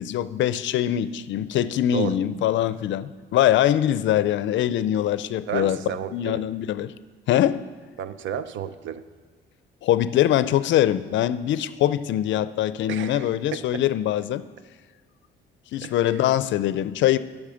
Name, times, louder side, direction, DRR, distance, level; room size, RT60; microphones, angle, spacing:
voice 1, 0.0-5.8 6.1-6.9 7.3-7.6 9.8-14.4 15.7-17.2, left 12 dB, 70° left, 15 dB, 0.4 m, -23 dB
voice 2, 5.5-6.4 8.0-9.0 12.9-13.8 15.8-16.2, right 9 dB, 75° right, 14 dB, 0.5 m, -32 dB
8.5 x 6.2 x 6.3 m, 1.5 s
cardioid pair, 90°, 20 cm